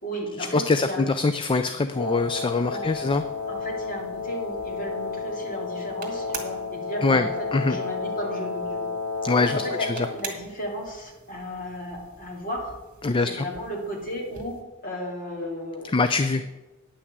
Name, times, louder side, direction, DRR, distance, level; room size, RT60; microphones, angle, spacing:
voice 1, 0.0-1.0 2.7-3.1 3.5-8.9 9.4-12.7 13.2-14.6 14.8-16.0 16.3-16.5, equal, 40° left, -1 dB, 2.8 m, -34 dB
voice 2, 0.5-3.2 7.0-7.8 9.2-10.1 13.0-13.4 15.9-16.4, left 3 dB, 25° left, 10 dB, 0.4 m, -23 dB
Wind instrument woodwind instrument, 1.9-10.2, left 4 dB, 75° left, 1.4 m, -32 dB
sound 1, 1.9-14.6, right 5 dB, 40° right, 1.9 m, -46 dB
9.8 x 6.0 x 8.0 m, 1.1 s
head